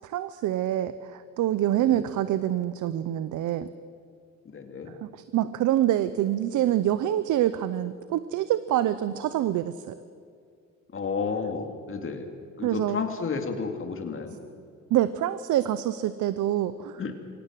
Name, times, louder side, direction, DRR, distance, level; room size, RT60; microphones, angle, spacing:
voice 1, 0.0-3.7 5.0-9.9 12.6-13.0 14.9-17.0, right 12 dB, 80° right, 14 dB, 0.8 m, -26 dB
voice 2, 4.4-4.9 10.9-12.3 12.6-14.4 17.0-17.1, left 5 dB, 45° left, 4 dB, 2.7 m, -32 dB
24.0 x 18.0 x 7.6 m, 2.3 s
cardioid pair, 90°, 30 cm